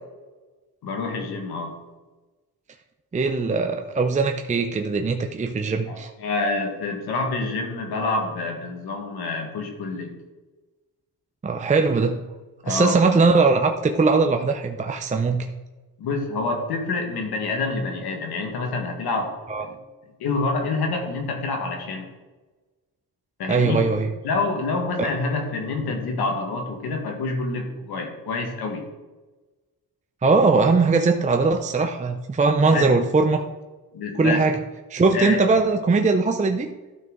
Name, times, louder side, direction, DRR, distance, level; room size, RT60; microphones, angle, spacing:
voice 1, 0.8-1.8 5.9-10.1 12.6-13.0 16.0-19.3 19.6-19.8 20.2-22.1 23.4-23.8 24.2-28.8 32.7-32.9 33.9-34.4 35.1-35.4, left 3 dB, 85° left, 2 dB, 1.9 m, -27 dB
voice 2, 3.1-6.1 11.4-12.3 12.7-15.4 19.5-19.6 23.5-24.1 25.0-25.1 30.2-33.5 34.1-34.6 34.9-36.7, right 4 dB, 20° right, 5 dB, 0.5 m, -20 dB
12.5 x 5.6 x 4.0 m, 1.2 s
cardioid pair, 110°, 37 cm